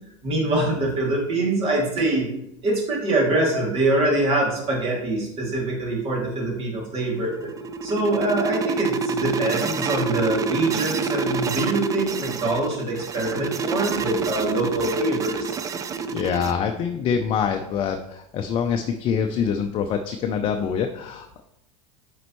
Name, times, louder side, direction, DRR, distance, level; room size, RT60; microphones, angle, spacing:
voice 1, 0.2-2.3 2.6-7.3 7.8-15.6, right 2 dB, 35° right, -2 dB, 2.4 m, -24 dB
sound 1, 7.1-16.5, right 5 dB, 20° right, 0.4 m, -27 dB
voice 2, 16.1-21.4, left 7 dB, 35° left, 5 dB, 0.5 m, -25 dB
7.7 x 5.3 x 3.1 m, 0.83 s
supercardioid pair, 125°, 16 cm